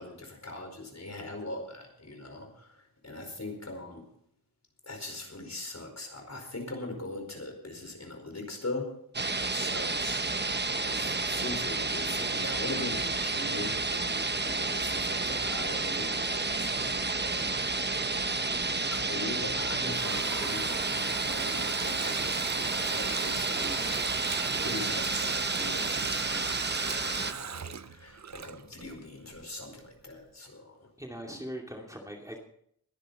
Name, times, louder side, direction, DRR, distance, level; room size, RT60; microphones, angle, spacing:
voice 1, 0.0-4.0 4.8-8.9 9.4-17.6 18.7-30.9, left 2 dB, 45° left, 3 dB, 4.9 m, -41 dB
sound 1, 9.1-27.3, right 3 dB, 30° right, 0.9 m, -30 dB
Water tap faucet, 19.4-29.0 29.3-29.4, right 7 dB, 50° right, 0.6 m, -39 dB
voice 2, 31.0-32.4, equal, 10° right, 0 dB, 2.4 m, -41 dB
21.0 x 10.5 x 4.2 m, 0.67 s
wide cardioid pair, 70°, 37 cm